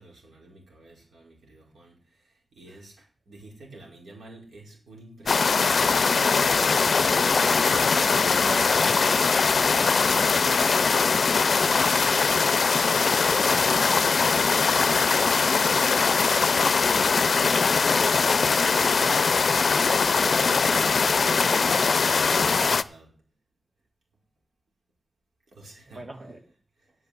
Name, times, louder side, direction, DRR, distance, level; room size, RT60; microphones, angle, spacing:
voice 1, 0.0-2.0 2.5-6.0 12.9-16.7 19.1-23.1 25.5-26.0, right 1 dB, 85° right, 5.1 m, -48 dB
sound 1, 5.3-22.8, left 5 dB, 55° left, 0.5 m, -21 dB
voice 2, 7.4-11.1 25.9-26.4, right 1 dB, 30° right, 1.7 m, -42 dB
9.2 x 7.6 x 8.4 m
wide cardioid pair, 150°, 0 cm